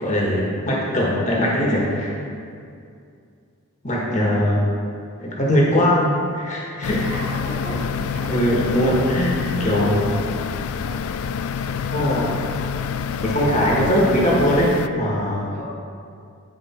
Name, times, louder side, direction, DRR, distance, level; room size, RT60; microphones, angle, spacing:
voice 1, 0.0-2.1 3.8-4.6 5.2-6.1 6.3-7.0 7.7-10.1 11.9-12.3 13.2-15.5, equal, 35° left, -4 dB, 1.4 m, -21 dB
sound 1, 6.8-14.9, left 7 dB, 80° left, 0.3 m, -27 dB
voice 2, 7.0-7.8 8.1-8.3 9.7-11.0 11.6-12.4 15.5-15.6, right 1 dB, 30° right, -5 dB, 1.8 m, -36 dB
10.5 x 4.8 x 4.3 m, 2.4 s
head